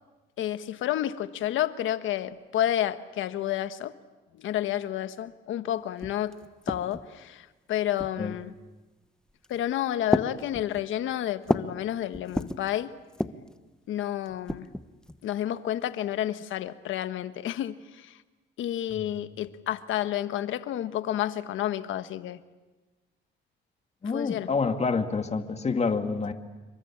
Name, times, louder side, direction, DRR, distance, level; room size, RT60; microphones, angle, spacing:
voice 1, 0.4-3.9 4.3-6.3 6.7-8.5 9.5-12.9 13.9-14.7 15.2-18.2 18.6-22.4 24.1-24.5, left 12 dB, 80° left, 11 dB, 1.4 m, -30 dB
sound 1, 5.7-5.8 6.0-7.2 8.0-8.5 9.3-9.6 10.1-11.8 12.1-12.7 13.1-13.5 14.2-15.2, left 1 dB, 5° left, 1.2 m, -32 dB
voice 2, 24.0-26.3, left 4 dB, 35° left, 6 dB, 2.3 m, -28 dB
28.0 x 24.0 x 8.8 m, 1.2 s
cardioid pair, 90°, 20 cm